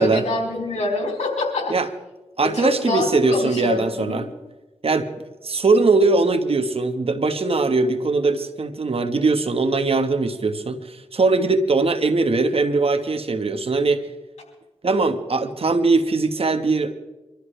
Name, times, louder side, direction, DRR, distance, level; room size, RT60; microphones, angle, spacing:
voice 1, 0.0-1.7 2.4-4.2, left 2 dB, 85° left, 1 dB, 4.1 m, -25 dB
voice 2, 2.4-4.3 4.8-14.0 14.8-16.9, right 3 dB, 60° right, 8 dB, 1.5 m, -21 dB
24.5 x 13.5 x 3.4 m, 1.1 s
cardioid pair, 40°, 11 cm